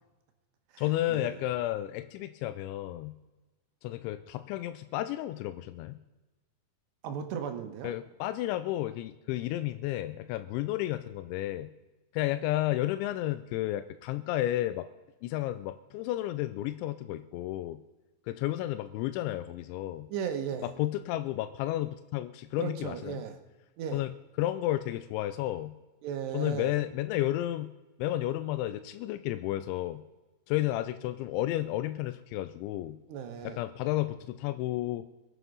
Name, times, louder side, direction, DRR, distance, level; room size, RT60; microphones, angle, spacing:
voice 1, 0.8-3.2 3.8-6.0 7.8-11.7 12.1-14.9 15.2-17.8 18.3-20.1 20.6-23.2 23.9-24.1 24.4-25.7 26.3-27.7 28.0-30.0 30.5-33.0 33.4-35.1, left 14 dB, 90° left, 11 dB, 3.0 m, -32 dB
voice 2, 7.0-7.9 20.1-20.7 22.6-23.4 23.8-24.0 26.0-26.7 33.1-33.6, right 8 dB, 75° right, 7 dB, 3.1 m, -36 dB
22.5 x 8.0 x 5.4 m, 1.1 s
omnidirectional pair, 5.2 m